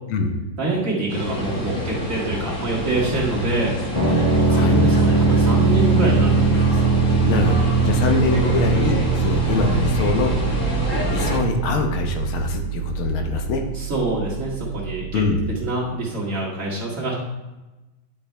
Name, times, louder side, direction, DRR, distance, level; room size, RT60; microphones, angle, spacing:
voice 1, 0.6-3.7 4.5-6.8 9.7-9.8 13.7-15.2 15.6-17.1, right 2 dB, 40° right, -6 dB, 2.2 m, -25 dB
sound 1, 1.1-11.4, left 1 dB, 40° left, 1.6 m, -27 dB
sound 2, 3.9-15.6, right 5 dB, 10° left, 2.1 m, -21 dB
voice 2, 7.2-10.3 11.1-13.6 15.1-15.4, left 4 dB, 85° left, 3 dB, 1.8 m, -23 dB
10.5 x 5.3 x 3.3 m, 1.1 s
omnidirectional pair, 2.2 m